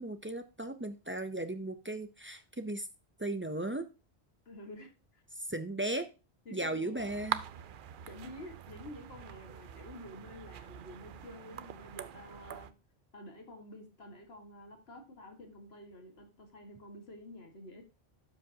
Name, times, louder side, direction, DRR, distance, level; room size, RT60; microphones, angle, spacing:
voice 1, 0.0-2.9 3.2-3.9 5.4-6.1 6.5-7.4, right 1 dB, 20° right, 9 dB, 0.3 m, -36 dB
voice 2, 4.5-5.2 6.5-7.0 8.1-12.7 13.1-17.8, left 1 dB, 70° left, 4 dB, 1.9 m, -50 dB
sound 1, 7.0-12.7, right 10 dB, 60° right, 0.6 m, -43 dB
12.0 x 5.2 x 2.7 m, 0.29 s
omnidirectional pair, 1.1 m